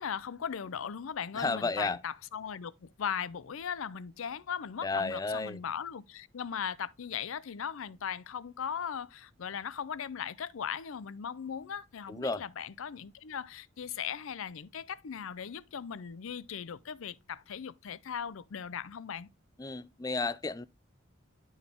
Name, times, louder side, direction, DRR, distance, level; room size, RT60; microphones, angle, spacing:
voice 1, 0.0-19.3, left 7 dB, 80° left, 0.5 m, -38 dB
voice 2, 1.3-2.0 4.8-5.6 12.1-12.4 19.6-20.7, left 3 dB, 15° left, 0.3 m, -32 dB
11.5 x 4.0 x 3.6 m
head